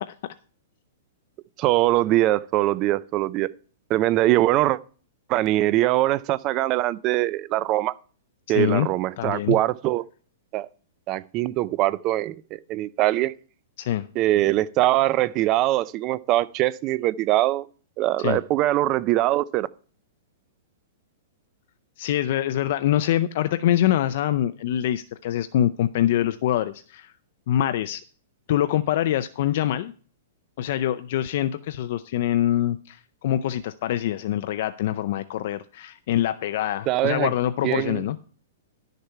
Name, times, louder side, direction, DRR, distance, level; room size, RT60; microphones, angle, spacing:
voice 1, 1.6-3.5 3.9-4.8 5.3-7.9 8.5-10.1 10.5-10.7 11.1-13.3 14.2-17.7 18.0-19.7 36.9-37.3 37.6-38.0, right 16 dB, 25° right, 0.4 m, -22 dB
voice 2, 8.5-8.9 9.2-9.6 13.8-14.1 18.2-18.4 22.0-27.1 27.5-28.0 28.5-29.9 30.6-38.2, left 12 dB, 50° left, 0.5 m, -24 dB
11.5 x 6.6 x 4.5 m
hypercardioid pair, 165°, 0 cm